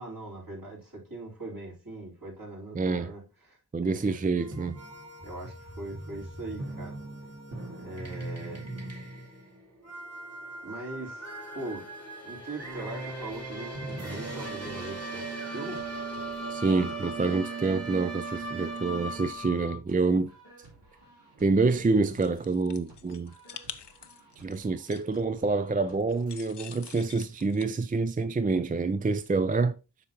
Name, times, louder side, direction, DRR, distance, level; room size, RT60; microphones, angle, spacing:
voice 1, 0.0-4.2 5.2-7.0 7.7-8.7 10.6-11.3 11.5-11.9 12.2-15.8, right 2 dB, 55° right, 3.9 m, -41 dB
voice 2, 2.7-3.1 3.7-4.7 16.5-20.3 21.4-23.3 24.4-29.8, right 3 dB, 20° right, 0.4 m, -27 dB
sound 1, 4.3-19.8, right 2 dB, 40° right, 2.2 m, -38 dB
sound 2, 13.2-26.4, right 2 dB, 90° right, 3.1 m, -56 dB
sound 3, 22.1-25.2 26.1-27.6, left 8 dB, 90° left, 0.7 m, -46 dB
8.0 x 5.6 x 2.9 m
wide cardioid pair, 65°, 40 cm